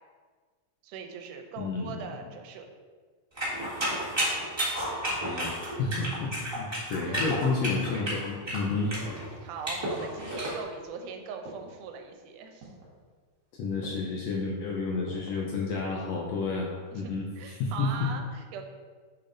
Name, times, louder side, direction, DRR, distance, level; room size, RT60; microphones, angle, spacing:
voice 1, 0.8-2.7 7.0-7.3 8.8-9.0 9.4-12.7 16.9-18.6, right 5 dB, 90° right, 4 dB, 2.2 m, -41 dB
voice 2, 1.6-2.0 5.2-8.9 13.6-18.1, left 3 dB, 75° left, -2 dB, 1.6 m, -31 dB
sound 1, 3.4-10.5, equal, 20° right, 0.7 m, -32 dB
sound 2, 10.2-11.0 11.5-12.0 12.6-13.0 13.8-14.3 15.1-15.5 16.0-16.6 16.9-17.0, right 2 dB, 60° right, 2.0 m, -49 dB
6.7 x 5.9 x 2.6 m, 1.5 s
omnidirectional pair, 3.6 m